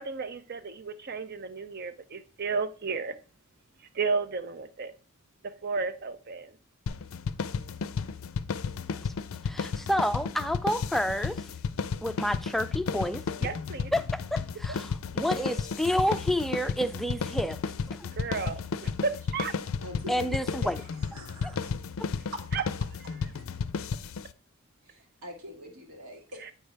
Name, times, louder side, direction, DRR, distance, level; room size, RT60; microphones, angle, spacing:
voice 1, 0.0-3.2 3.9-4.9 5.4-6.6 13.4-13.9 14.7-14.8 18.1-19.5 22.5-22.6 26.4-26.5, right 4 dB, 50° right, 0.6 m, -33 dB
sound 1, 6.9-24.3, left 5 dB, 70° left, 0.4 m, -33 dB
voice 2, 9.4-11.4 12.0-13.2 13.9-17.6 17.9-18.1 20.1-20.8, equal, ahead, 0.3 m, -29 dB
voice 3, 19.8-21.7 22.3-22.4 23.3-23.4 24.8-26.4, left 1 dB, 85° right, 2.1 m, -43 dB
9.2 x 4.6 x 3.3 m
head